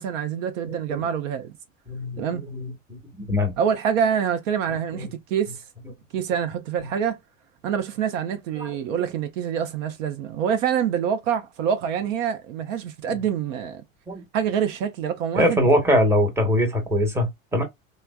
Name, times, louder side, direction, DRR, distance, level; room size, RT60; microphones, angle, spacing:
voice 1, 0.0-1.5 2.2-2.5 3.6-5.6 6.1-7.2 7.6-13.8 14.3-15.7, right 8 dB, 70° right, 0.7 m, -26 dB
voice 2, 0.7-1.0 1.9-2.2 2.5-3.5 4.9-5.1 8.6-8.8 14.1-14.2 15.3-17.6, equal, 5° right, 1.0 m, -22 dB
3.2 x 2.1 x 2.2 m
hypercardioid pair, 100°, 40 cm